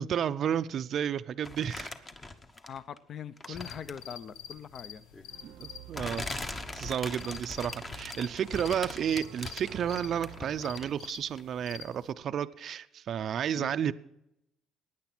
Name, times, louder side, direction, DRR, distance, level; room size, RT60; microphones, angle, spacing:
voice 1, 0.0-1.9 5.4-6.2 6.7-13.9, right 9 dB, 45° right, 10 dB, 0.4 m, -32 dB
sound 1, 1.4-3.0 3.4-4.1 5.1-5.2 5.9-11.1 11.4-11.5, left 2 dB, 20° left, 1.0 m, -41 dB
voice 2, 2.5-5.5 13.5-13.7, left 7 dB, 45° left, 16 dB, 0.6 m, -43 dB
sound 2, 3.5-12.1, left 9 dB, 90° left, 0.9 m, -48 dB
sound 3, 5.3-10.9, right 14 dB, 80° right, 0.7 m, -50 dB
16.0 x 9.7 x 6.0 m, 0.84 s
cardioid pair, 135°, 0 cm